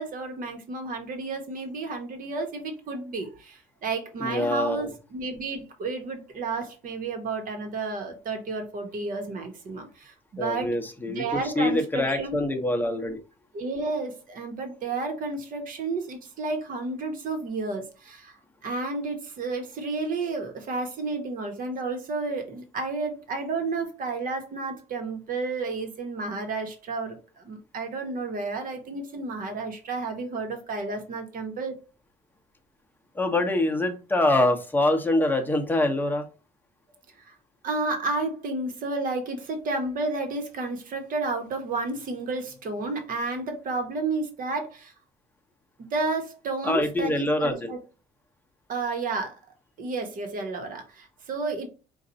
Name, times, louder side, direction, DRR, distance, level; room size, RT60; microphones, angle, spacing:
voice 1, 0.0-10.1 10.4-10.8 11.1-12.4 13.5-18.4 18.6-31.8 37.3-37.4 37.6-44.9 45.9-47.8 48.7-49.4 49.8-51.7, right 3 dB, 55° right, 4 dB, 1.3 m, -31 dB
voice 2, 4.2-4.9 10.4-13.2 33.1-36.3 46.6-47.7, left 1 dB, 10° left, 3 dB, 0.9 m, -25 dB
4.5 x 2.6 x 4.0 m, 0.33 s
cardioid pair, 110°, 17 cm